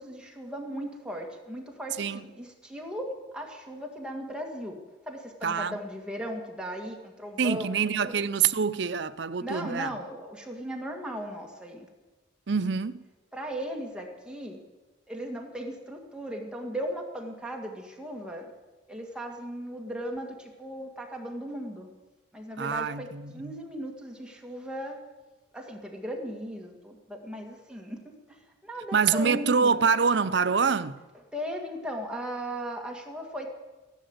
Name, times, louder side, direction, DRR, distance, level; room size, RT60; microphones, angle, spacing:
voice 1, 0.0-4.8 5.0-7.7 8.0-8.2 9.4-11.9 13.3-14.6 15.1-18.5 18.9-21.9 22.3-25.0 25.5-29.9 31.3-33.5, equal, 5° right, 1.9 m, -37 dB
voice 2, 5.4-5.8 7.4-9.9 12.5-13.1 22.6-23.6 28.9-31.0, right 6 dB, 60° right, 0.6 m, -26 dB
15.5 x 11.5 x 8.0 m
head